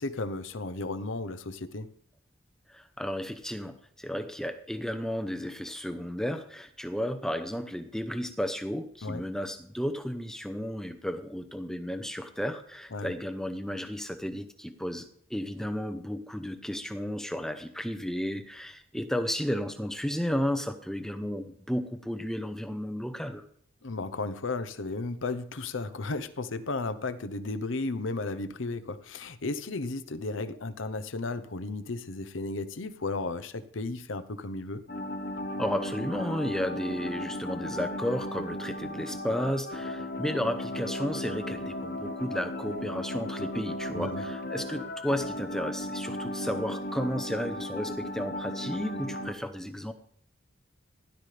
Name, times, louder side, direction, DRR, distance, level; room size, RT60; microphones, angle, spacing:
voice 1, 0.0-1.9 9.0-9.2 12.9-13.1 23.8-34.8 43.9-44.3, left 3 dB, 85° left, 12 dB, 0.9 m, -34 dB
voice 2, 2.7-23.4 35.6-49.9, equal, 5° left, 8 dB, 0.7 m, -33 dB
sound 1, 34.9-49.3, left 1 dB, 50° left, 0.9 m, -36 dB
16.5 x 11.5 x 3.4 m, 0.63 s
head